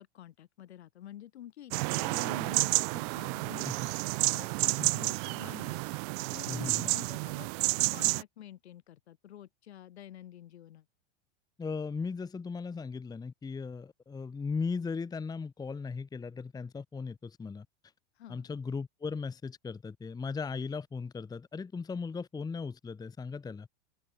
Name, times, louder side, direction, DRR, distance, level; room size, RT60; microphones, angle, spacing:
voice 1, 0.0-3.9 4.3-5.8 6.3-10.8 18.2-18.5, left 12 dB, 65° left, 5.9 m, -49 dB
sound 1, 1.7-8.2, right 34 dB, 35° right, 0.4 m, -30 dB
voice 2, 6.5-6.9 11.6-17.7 18.3-23.7, left 5 dB, 10° left, 1.0 m, -37 dB
open air
figure-of-eight pair, 90°, 34 cm